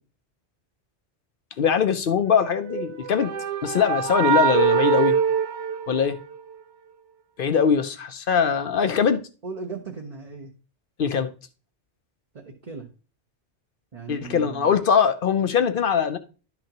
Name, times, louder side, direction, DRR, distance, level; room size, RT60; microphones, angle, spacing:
voice 1, 1.6-3.3 3.6-5.2 5.9-6.2 7.4-9.2 11.0-11.3 14.1-16.2, left 7 dB, 55° left, 0.7 m, -22 dB
sound 1, 2.6-6.5, right 6 dB, 80° right, 1.1 m, -23 dB
voice 2, 9.4-10.5 12.3-12.9 13.9-14.8, right 5 dB, 35° right, 0.9 m, -37 dB
11.5 x 5.9 x 2.9 m
omnidirectional pair, 1.2 m